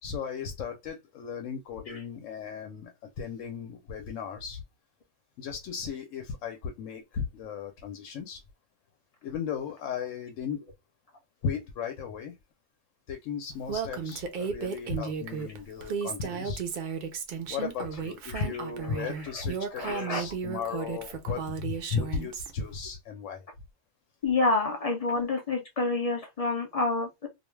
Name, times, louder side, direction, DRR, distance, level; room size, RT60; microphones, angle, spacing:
voice 1, 0.0-4.6 5.4-8.4 9.2-10.6 11.4-12.4 13.1-16.6 17.5-23.5, left 6 dB, 85° left, 0.9 m, -36 dB
Female speech woman speaking, 13.7-22.5, right 6 dB, 60° right, 0.5 m, -34 dB
voice 2, 19.8-20.2 24.2-27.3, left 3 dB, 50° left, 0.4 m, -28 dB
2.4 x 2.2 x 3.1 m
omnidirectional pair, 1.3 m